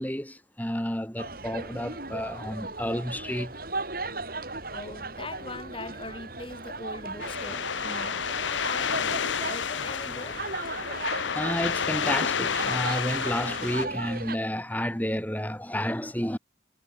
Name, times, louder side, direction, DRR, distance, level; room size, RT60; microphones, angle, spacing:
voice 1, 0.0-3.5 11.3-16.4, equal, 10° left, 3.6 m, -31 dB
sound 1, 1.2-14.4, right 3 dB, 50° right, 7.4 m, -37 dB
voice 2, 4.3-9.0 9.5-10.4, left 2 dB, 30° left, 6.9 m, -41 dB
sound 2, 7.2-13.9, left 7 dB, 80° left, 1.0 m, -30 dB
head